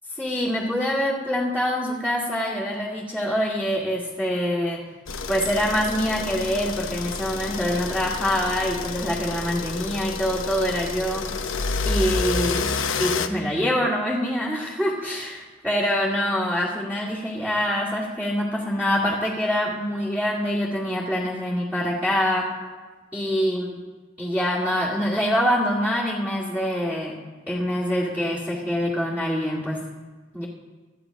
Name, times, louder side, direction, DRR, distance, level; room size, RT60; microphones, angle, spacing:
voice 1, 0.2-4.8 5.3-11.3 11.8-12.7 13.0-22.5 23.1-23.6 24.2-27.1 27.5-29.8 30.3-30.5, equal, 5° right, -8 dB, 2.3 m, -25 dB
sound 1, 5.1-13.3, left 4 dB, 90° left, 1.0 m, -29 dB
26.0 x 13.5 x 3.0 m, 1.3 s
head